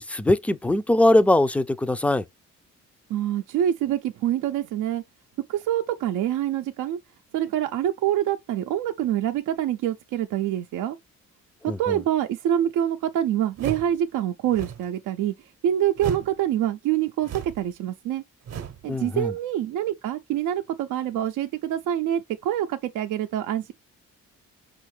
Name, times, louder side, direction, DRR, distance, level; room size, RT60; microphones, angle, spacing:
voice 1, 0.0-2.2 11.7-12.0 18.9-19.3, left 1 dB, 5° left, 0.4 m, -21 dB
voice 2, 3.1-5.0 5.5-7.0 7.3-11.0 11.8-15.3 15.6-18.2 18.8-23.7, right 11 dB, 80° right, 0.5 m, -26 dB
sound 1, 13.6-14.0 14.5-14.9 16.0-16.4 17.2-17.7 18.5-18.9, right 8 dB, 60° right, 0.8 m, -34 dB
5.5 x 2.5 x 3.2 m
cardioid pair, 90°, 30 cm